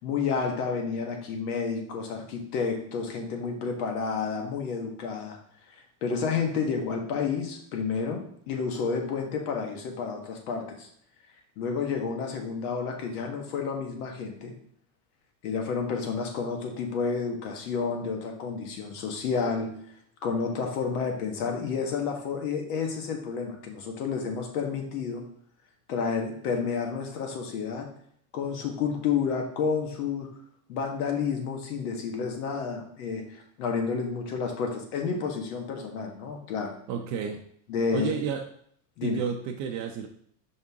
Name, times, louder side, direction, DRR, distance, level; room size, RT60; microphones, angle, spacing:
voice 1, 0.0-5.4 6.0-10.9 11.6-14.5 15.4-19.7 20.2-25.2 25.9-27.9 28.3-30.3 30.7-36.8 37.7-38.2 39.0-39.2, left 5 dB, 80° left, 3 dB, 1.6 m, -30 dB
voice 2, 36.9-37.4 37.9-38.4 39.0-40.1, right 7 dB, 40° right, 3 dB, 0.6 m, -31 dB
5.7 x 5.3 x 3.6 m, 0.65 s
supercardioid pair, 145°, 45 cm